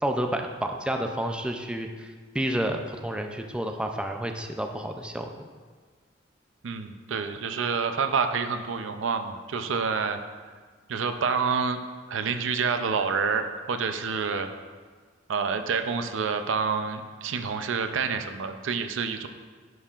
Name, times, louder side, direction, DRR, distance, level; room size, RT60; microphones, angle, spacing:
voice 1, 0.0-5.5, right 1 dB, 5° right, 4 dB, 0.4 m, -30 dB
voice 2, 6.6-10.2 10.9-11.8 12.1-14.5 15.3-19.3, right 5 dB, 90° right, 8 dB, 0.5 m, -28 dB
10.5 x 5.6 x 2.4 m, 1.5 s
head